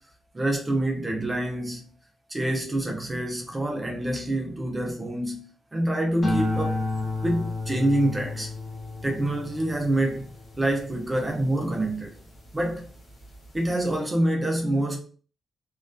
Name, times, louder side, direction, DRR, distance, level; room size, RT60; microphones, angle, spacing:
voice 1, 0.3-1.9 2.3-6.8 7.2-8.5 9.0-10.3 10.6-12.1 12.5-12.9 13.5-15.0, right 1 dB, 15° right, 0.5 m, -26 dB
sound 1, 6.2-12.7 13.2-13.7, left 2 dB, 30° left, 0.6 m, -32 dB
2.5 x 2.3 x 2.2 m
wide cardioid pair, 155°, 0 cm